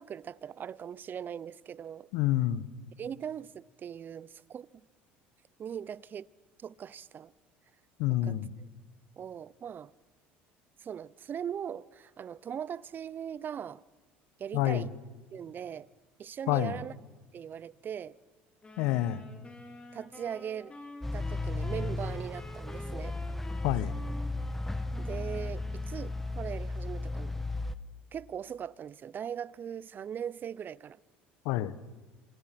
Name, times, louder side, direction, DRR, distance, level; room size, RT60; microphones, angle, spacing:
voice 1, 0.0-2.1 3.0-4.8 5.6-6.3 6.6-7.3 8.2-8.3 9.2-9.9 10.8-13.8 14.4-14.9 15.3-15.9 16.2-16.9 17.3-18.2 19.9-20.7 21.1-23.2 25.0-27.4 28.1-31.0, right 8 dB, 40° right, 0.7 m, -40 dB
voice 2, 2.1-2.7 8.0-8.5 14.5-14.9 16.5-16.8 18.8-19.2 23.6-23.9 31.4-31.7, left 14 dB, 75° left, 1.2 m, -28 dB
sound 1, 18.6-26.6, left 2 dB, 20° left, 5.0 m, -49 dB
sound 2, 21.0-27.8, left 2 dB, 5° left, 1.3 m, -35 dB
27.0 x 26.0 x 6.1 m
supercardioid pair, 80°, 5 cm